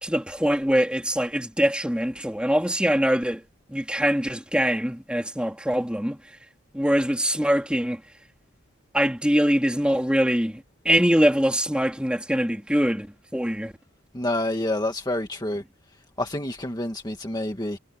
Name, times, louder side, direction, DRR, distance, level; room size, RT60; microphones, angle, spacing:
voice 1, 0.0-3.4 3.7-6.4 6.7-8.0 8.9-13.7, equal, 5° right, 3.0 m, -23 dB
voice 2, 14.1-15.6 16.2-17.8, left 1 dB, 20° left, 2.0 m, -28 dB
head